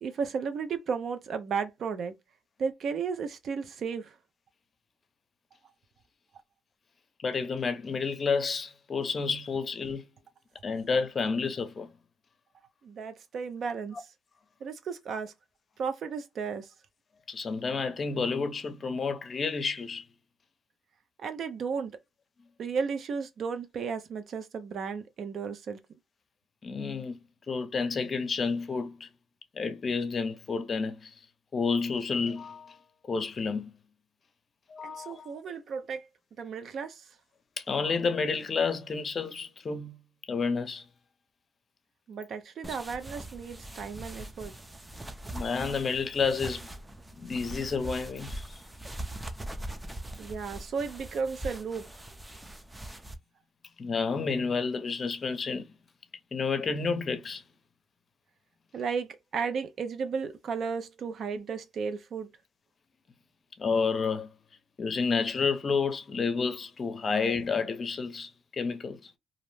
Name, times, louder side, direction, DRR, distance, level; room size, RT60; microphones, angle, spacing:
voice 1, 0.0-2.1 2.6-4.1 12.8-14.0 14.6-15.3 15.8-16.7 21.2-22.0 22.6-25.8 34.8-36.1 36.4-37.0 42.1-44.5 50.2-51.9 58.7-62.3, right 5 dB, 60° right, 0.5 m, -34 dB
voice 2, 7.2-10.0 10.6-11.9 17.3-20.0 26.6-27.2 27.5-29.1 29.5-31.1 31.5-32.8 33.1-33.7 34.7-35.3 37.6-40.0 40.3-40.8 45.3-46.7 47.2-48.4 53.8-55.7 56.3-57.4 63.6-64.3 64.8-69.1, left 5 dB, 40° left, 0.6 m, -30 dB
sound 1, 42.6-53.1, right 1 dB, 10° right, 0.5 m, -41 dB
2.5 x 2.0 x 3.1 m
cardioid pair, 90°, 0 cm